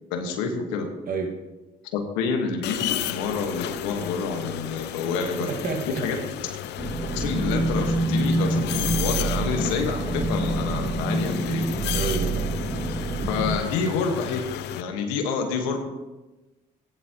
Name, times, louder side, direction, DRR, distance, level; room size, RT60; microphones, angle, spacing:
voice 1, 0.1-0.9 1.9-5.5 6.0-6.2 7.1-11.6 13.3-14.4 14.7-15.8, left 5 dB, 90° left, 4 dB, 1.4 m, -28 dB
sound 1, 2.6-14.8, left 12 dB, 70° left, 0.6 m, -33 dB
voice 2, 5.4-6.0 11.9-12.5, right 4 dB, 55° right, 3 dB, 1.9 m, -29 dB
sound 2, 6.8-13.6, right 2 dB, 10° right, 2.7 m, -26 dB
16.0 x 10.5 x 3.0 m, 1.1 s
supercardioid pair, 65°, 18 cm